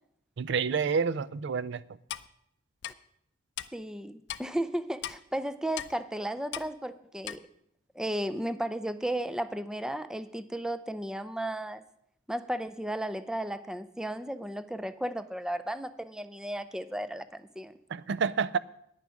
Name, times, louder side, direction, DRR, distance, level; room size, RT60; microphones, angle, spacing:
voice 1, 0.4-1.8 17.9-18.6, right 6 dB, 65° right, 0.4 m, -28 dB
Clock, 2.1-2.3 2.8-2.9 3.6-3.7 4.3-4.4 5.0-5.2 5.8-5.9 6.5-6.7 7.2-7.4, left 11 dB, 65° left, 0.5 m, -37 dB
voice 2, 3.7-7.4 8.0-11.8 12.3-17.7, right 1 dB, 5° right, 0.4 m, -34 dB
10.5 x 9.6 x 6.3 m
head